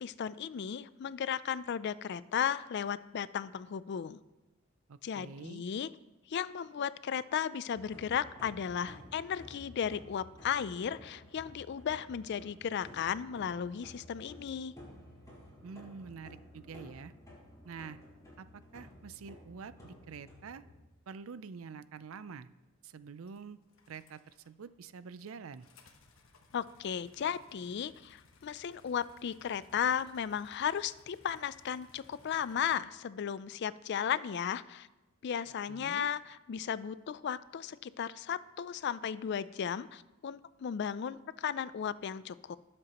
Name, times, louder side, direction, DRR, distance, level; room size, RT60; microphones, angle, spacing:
voice 1, 0.0-4.2 5.0-5.9 6.3-14.7 26.5-34.9 35.2-42.6, left 8 dB, 55° left, 17 dB, 0.4 m, -35 dB
voice 2, 4.9-5.6 15.6-17.1 17.6-18.0 18.4-18.5 18.7-20.6 21.1-22.5 22.8-23.6 23.9-25.7 35.7-36.1, right 5 dB, 80° right, 15 dB, 0.5 m, -46 dB
sound 1, 7.7-20.8, left 1 dB, 15° left, 4.1 m, -53 dB
sound 2, 14.4-14.5 18.9-19.0 23.3-24.7 25.0-32.8, left 3 dB, 70° left, 1.1 m, -63 dB
19.5 x 7.6 x 3.0 m, 1.1 s
head